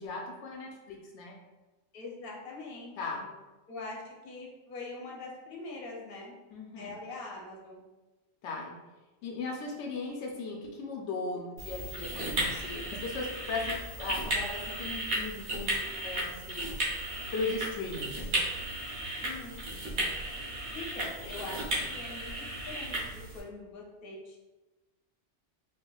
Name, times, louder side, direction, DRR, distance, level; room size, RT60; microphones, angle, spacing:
voice 1, 0.0-1.4 3.0-3.2 6.5-6.9 8.4-8.8 9.2-16.8 17.3-18.2, left 3 dB, 85° left, 0 dB, 0.9 m, -37 dB
voice 2, 1.9-3.3 3.7-6.3 6.8-7.8 19.2-19.7 20.7-24.4, left 3 dB, 55° left, -2 dB, 0.9 m, -43 dB
sound 1, 11.6-23.4, right 1 dB, 70° right, 1.2 m, -35 dB
4.3 x 2.4 x 2.3 m, 1.1 s
omnidirectional pair, 1.2 m